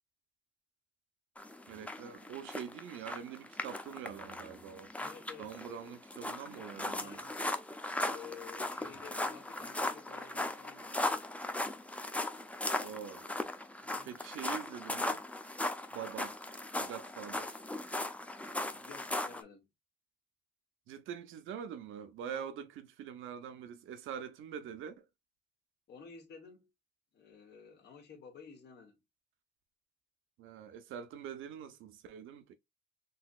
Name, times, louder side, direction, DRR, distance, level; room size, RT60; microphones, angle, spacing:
sound 1, 1.4-19.4, left 1 dB, 5° left, 0.5 m, -38 dB
voice 1, 1.7-4.9 5.4-7.2 8.8-9.0 12.8-13.3 14.0-15.2 15.9-16.4 16.8-17.6 20.9-25.1 30.4-32.5, right 8 dB, 85° right, 0.6 m, -44 dB
voice 2, 5.0-6.0 6.4-7.4 8.0-11.3 13.8-14.2 18.6-19.7 22.2-22.4 25.9-26.7 27.1-29.0, left 6 dB, 60° left, 1.2 m, -53 dB
3.9 x 2.8 x 2.3 m
cardioid pair, 90°, 20 cm